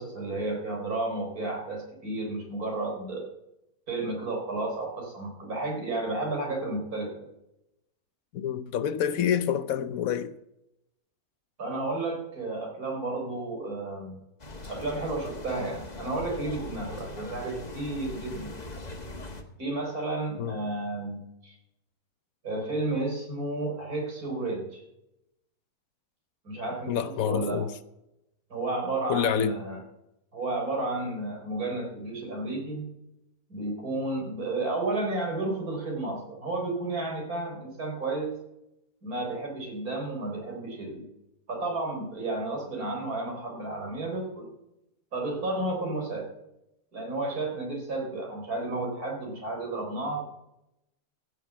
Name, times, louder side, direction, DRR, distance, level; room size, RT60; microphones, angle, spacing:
voice 1, 0.0-3.2 3.9-7.2 11.6-14.2 14.7-18.5 19.6-21.6 22.4-24.8 26.4-27.6 28.5-29.8 30.3-32.9 33.5-38.3 39.0-41.1 41.5-44.5 45.1-46.3 46.9-50.2, right 2 dB, 75° right, 4.5 m, -32 dB
voice 2, 8.3-10.3 20.4-20.6 26.9-27.7 29.1-29.6, left 8 dB, 70° left, 1.1 m, -27 dB
sound 1, 14.4-19.4, left 2 dB, 30° left, 1.4 m, -40 dB
15.5 x 6.8 x 7.1 m
omnidirectional pair, 1.6 m